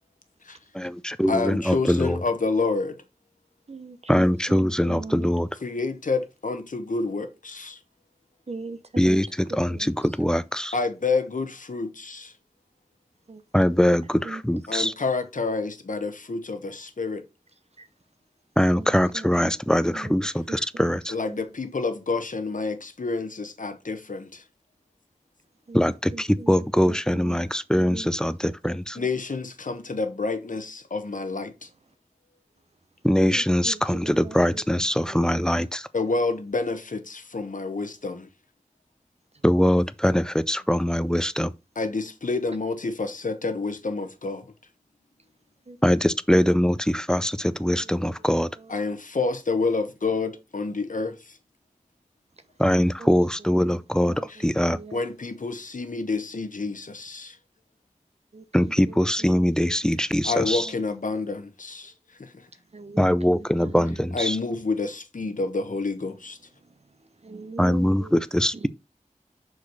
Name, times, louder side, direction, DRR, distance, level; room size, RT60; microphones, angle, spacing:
voice 1, 0.7-2.2 4.1-5.5 9.0-10.7 13.5-14.9 18.6-21.1 25.7-29.0 33.0-35.9 39.4-41.5 45.8-48.5 52.6-54.8 58.5-60.7 63.0-64.4 67.6-68.7, equal, 5° left, 0.5 m, -22 dB
voice 2, 1.3-2.9 5.6-7.7 10.7-12.2 14.7-17.2 21.1-24.2 29.0-31.5 35.9-38.2 41.8-44.4 48.7-51.1 54.9-57.3 60.2-61.9 64.1-66.3, left 3 dB, 75° left, 1.1 m, -28 dB
voice 3, 3.7-5.3 8.5-9.2 9.7-9.9 13.3-13.7 14.2-14.4 17.8-17.9 18.8-19.6 19.9-20.1 20.5-20.6 21.3-21.5 25.7-27.4 27.8-28.1 28.4-28.5 29.0-29.1 33.3-35.4 45.7-45.8 46.7-46.8 47.8-47.9 48.2-48.3 48.6-48.8 53.0-53.2 53.4-53.8 54.1-55.0 58.3-60.4 60.6-60.7 62.7-63.1 63.3-64.1 67.2-68.2 68.5-68.7, right 3 dB, 50° right, 0.7 m, -41 dB
6.3 x 4.8 x 4.0 m
wide cardioid pair, 45°, 13 cm